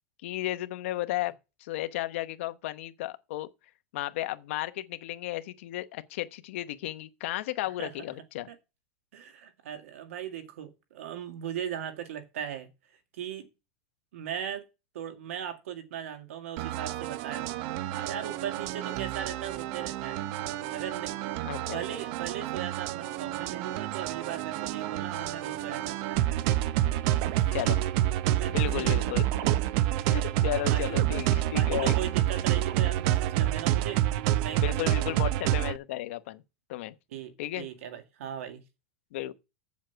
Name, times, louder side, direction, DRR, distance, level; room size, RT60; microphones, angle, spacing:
voice 1, 0.2-1.3 1.6-3.5 3.9-8.5 21.4-21.8 27.5-27.8 28.5-29.5 30.1-31.9 34.6-36.4 36.7-36.9 37.4-37.7 39.1-39.3, left 15 dB, 70° left, 0.9 m, -34 dB
voice 2, 9.1-12.7 13.1-13.5 14.1-14.6 14.9-17.5 17.9-20.2 20.7-21.1 21.6-26.5 27.3-27.6 28.3-29.2 30.5-30.8 31.5-34.0 34.4-35.1 37.1-38.6, right 9 dB, 90° right, 2.1 m, -38 dB
sound 1, 16.6-35.8, right 13 dB, 50° right, 0.6 m, -28 dB
7.8 x 7.3 x 5.7 m
supercardioid pair, 155°, 7 cm